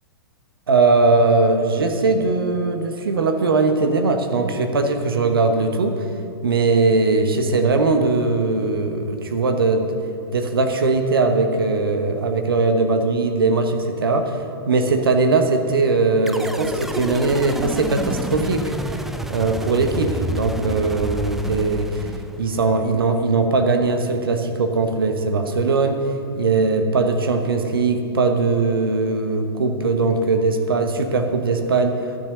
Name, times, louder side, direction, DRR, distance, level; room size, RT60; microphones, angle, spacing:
voice 1, 0.7-6.0 6.4-10.0 10.3-14.4 14.7-18.9 19.3-22.1 22.4-26.0 26.4-32.0, right 3 dB, 65° right, 6 dB, 1.1 m, -20 dB
sound 1, 16.3-22.7, right 1 dB, ahead, 0.4 m, -29 dB
12.0 x 6.7 x 7.7 m, 2.8 s
figure-of-eight pair, 105°, 13 cm